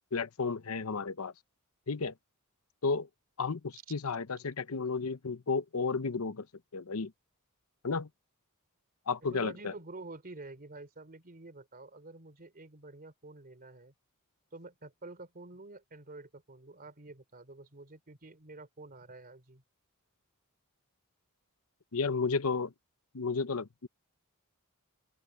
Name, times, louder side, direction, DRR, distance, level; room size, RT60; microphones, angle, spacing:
voice 1, 0.1-1.3 1.9-2.1 2.8-3.1 3.4-6.5 6.7-7.1 7.8-8.1 9.1-9.7 21.9-22.7 23.1-23.9, left 4 dB, 75° left, 0.8 m, -32 dB
voice 2, 9.2-13.9 14.5-19.6, right 2 dB, 40° right, 3.1 m, -49 dB
open air
head